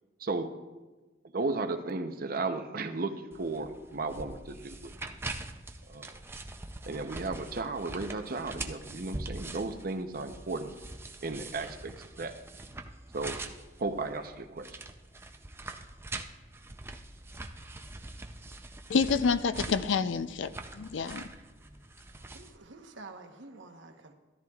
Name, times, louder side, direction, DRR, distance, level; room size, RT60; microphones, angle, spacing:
voice 1, 0.2-0.5 1.2-4.9 5.9-6.2 6.9-10.7 11.2-12.3 13.1-13.4 13.8-14.8, right 3 dB, 50° right, 0.7 m, -35 dB
sound 1, 3.3-22.6, right 2 dB, 15° right, 0.4 m, -43 dB
voice 2, 18.9-21.2, left 5 dB, 80° left, 0.4 m, -28 dB
voice 3, 22.1-24.1, right 3 dB, 80° right, 1.0 m, -49 dB
13.5 x 13.0 x 2.3 m
head